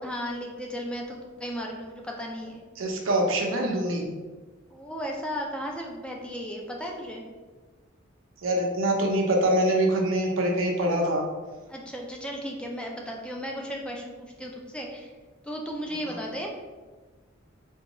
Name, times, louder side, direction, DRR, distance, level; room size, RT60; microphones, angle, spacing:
voice 1, 0.0-2.6 4.7-7.2 11.7-15.1 15.4-16.5, equal, 5° left, 0 dB, 0.3 m, -35 dB
voice 2, 2.8-4.0 8.4-11.2 16.1-16.2, right 1 dB, 85° right, 1 dB, 0.6 m, -24 dB
3.5 x 2.3 x 2.9 m, 1.3 s
head